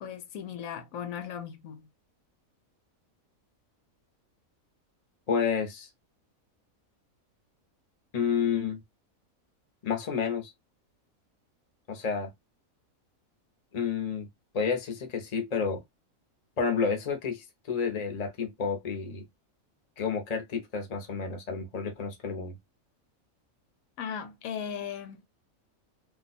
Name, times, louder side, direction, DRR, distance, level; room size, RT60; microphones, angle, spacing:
voice 1, 0.0-1.9 24.0-25.2, left 8 dB, 80° left, 1.1 m, -37 dB
voice 2, 5.3-5.9 8.1-8.8 9.8-10.5 11.9-12.3 13.7-14.3 14.5-15.8 16.6-19.2 20.0-22.6, left 6 dB, 35° left, 0.7 m, -30 dB
2.6 x 2.3 x 3.9 m
omnidirectional pair, 1.4 m